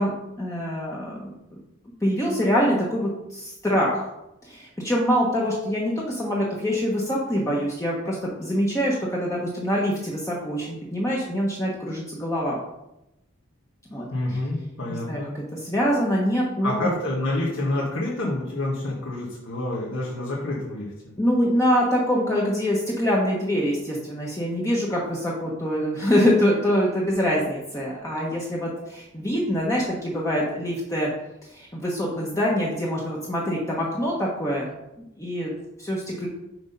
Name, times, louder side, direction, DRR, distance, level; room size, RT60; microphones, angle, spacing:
voice 1, 0.0-1.3 2.0-4.1 4.4-12.6 13.9-14.1 14.9-16.9 21.2-31.1 31.5-34.7 35.2-36.3, equal, 15° left, -4 dB, 0.9 m, -25 dB
voice 2, 14.1-15.3 16.6-21.1, left 1 dB, 80° left, -5 dB, 1.4 m, -28 dB
6.0 x 4.3 x 5.3 m, 0.89 s
head